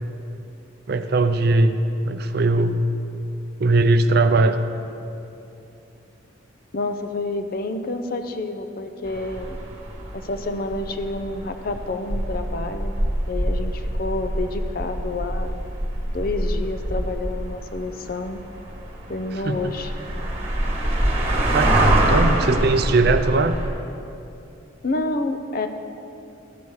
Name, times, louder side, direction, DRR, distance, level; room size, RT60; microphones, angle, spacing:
voice 1, 0.9-2.8 3.6-4.6 19.4-19.7 21.3-23.6, right 2 dB, 50° right, 9 dB, 0.4 m, -20 dB
voice 2, 6.7-9.7 10.1-12.9 13.3-15.6 16.1-18.4 19.1-19.9 24.8-25.7, left 2 dB, 45° left, 7 dB, 0.6 m, -29 dB
sound 1, 9.1-23.7, right 1 dB, 30° right, 1.5 m, -25 dB
13.5 x 7.0 x 4.7 m, 2.8 s
head